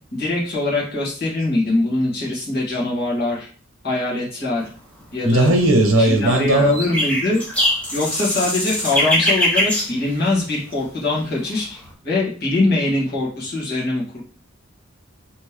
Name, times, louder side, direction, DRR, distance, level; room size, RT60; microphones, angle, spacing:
voice 1, 0.1-3.5 3.8-4.7 5.1-5.5 6.0-7.4 7.9-14.2, left 2 dB, 50° left, -6 dB, 1.6 m, -22 dB
sound 1, 5.0-5.5 6.2-10.8 11.2-11.9, left 1 dB, 5° left, 0.8 m, -22 dB
voice 2, 5.2-6.8, right 1 dB, 80° right, 4 dB, 1.0 m, -16 dB
3.3 x 3.0 x 3.4 m, 0.41 s
head